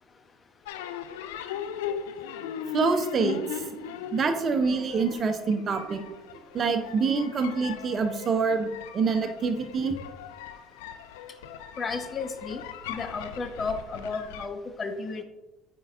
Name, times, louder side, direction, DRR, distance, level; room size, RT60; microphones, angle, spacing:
sound 1, 0.6-14.5, left 9 dB, 70° left, 0.4 m, -39 dB
voice 1, 2.7-3.6 4.1-6.0 6.5-10.0, right 4 dB, 40° right, 7 dB, 0.7 m, -26 dB
voice 2, 11.8-15.2, left 4 dB, 35° left, 8 dB, 0.7 m, -33 dB
8.8 x 4.6 x 2.5 m, 1.0 s
figure-of-eight pair, 60°, 0 cm